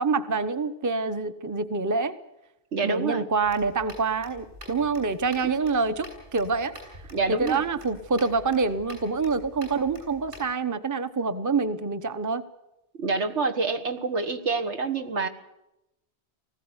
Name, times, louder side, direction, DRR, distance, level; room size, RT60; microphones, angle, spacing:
voice 1, 0.0-2.2 2.8-6.7 7.3-12.4, right 4 dB, 20° right, 11 dB, 0.8 m, -26 dB
voice 2, 2.7-3.3 7.1-7.6 13.0-15.3, right 4 dB, 75° right, 6 dB, 1.7 m, -27 dB
sound 1, 3.4-10.5, equal, 55° right, 8.4 m, -47 dB
20.0 x 16.0 x 9.7 m, 0.90 s
omnidirectional pair, 1.2 m